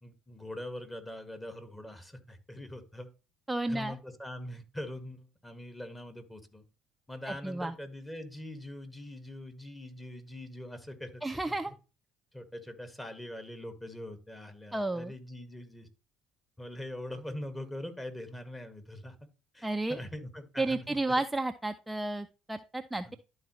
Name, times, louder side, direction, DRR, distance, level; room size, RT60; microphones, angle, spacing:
voice 1, 0.0-3.1 3.7-6.6 7.1-11.6 12.3-15.9 16.6-19.2 19.5-21.0 23.1-23.2, left 1 dB, 15° left, 7 dB, 1.8 m, -43 dB
voice 2, 3.5-4.0 7.3-7.7 11.2-11.7 14.7-15.1 19.6-20.0 20.6-23.2, right 2 dB, 10° right, 7 dB, 0.5 m, -32 dB
12.0 x 4.0 x 3.1 m, 0.32 s
hypercardioid pair, 65°, 0 cm